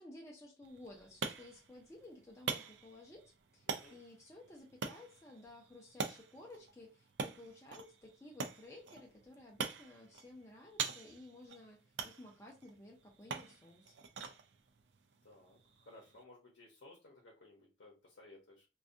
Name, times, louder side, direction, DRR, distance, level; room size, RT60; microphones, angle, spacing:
voice 1, 0.0-13.9, left 1 dB, 15° left, -2 dB, 0.4 m, -55 dB
sound 1, 0.6-16.2, right 5 dB, 75° right, 0.4 m, -45 dB
voice 2, 3.7-4.0 15.2-18.7, left 2 dB, 75° left, -1 dB, 0.7 m, -58 dB
2.6 x 2.3 x 2.4 m, 0.30 s
head